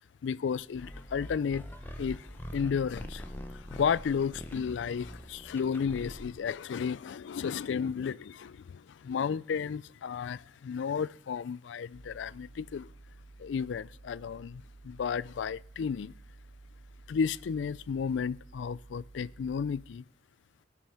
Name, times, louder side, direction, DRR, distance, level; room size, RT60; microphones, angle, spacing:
voice 1, 0.2-1.6 1.9-12.9 13.4-16.1 17.1-20.0, left 6 dB, 75° left, 0.4 m, -33 dB
sound 1, 0.7-6.5, equal, 10° left, 1.0 m, -44 dB
sound 2, 11.9-19.8, right 2 dB, 80° right, 2.7 m, -53 dB
17.5 x 6.3 x 5.6 m
head